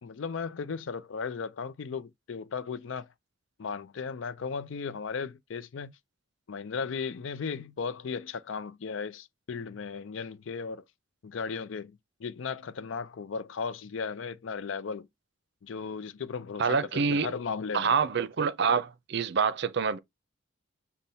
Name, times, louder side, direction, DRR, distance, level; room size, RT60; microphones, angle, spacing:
voice 1, 0.0-3.1 3.6-5.9 6.5-10.8 11.2-15.1 15.6-17.9, left 5 dB, 80° left, 0.5 m, -36 dB
voice 2, 16.6-17.3 17.7-20.0, right 5 dB, 60° right, 0.5 m, -26 dB
5.4 x 2.2 x 4.2 m
head